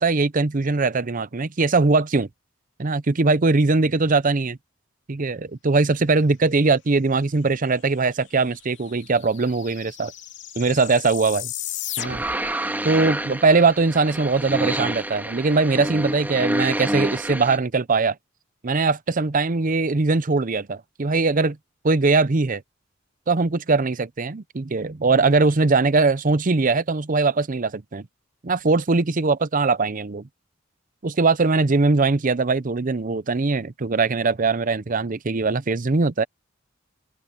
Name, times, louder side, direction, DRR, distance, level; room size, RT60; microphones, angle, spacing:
voice 1, 0.0-2.3 2.8-4.6 5.1-10.1 10.6-11.5 12.0-12.2 12.8-18.1 18.6-21.6 21.8-22.6 23.3-28.1 28.4-30.2 31.0-36.2, right 3 dB, 45° right, 0.7 m, -21 dB
sound 1, 8.0-8.1 8.3-12.5, left 12 dB, 65° left, 2.7 m, -35 dB
sound 2, 12.0-17.6, right 1 dB, 10° right, 1.8 m, -28 dB
open air
head